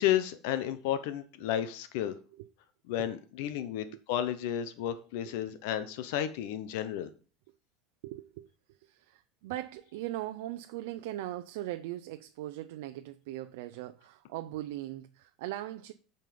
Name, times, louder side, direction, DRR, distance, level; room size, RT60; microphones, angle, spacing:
voice 1, 0.0-2.1 2.9-7.1, left 11 dB, 70° left, 0.9 m, -32 dB
voice 2, 8.0-15.9, right 15 dB, 80° right, 0.6 m, -40 dB
9.2 x 5.4 x 5.1 m
cardioid pair, 160°, 0 cm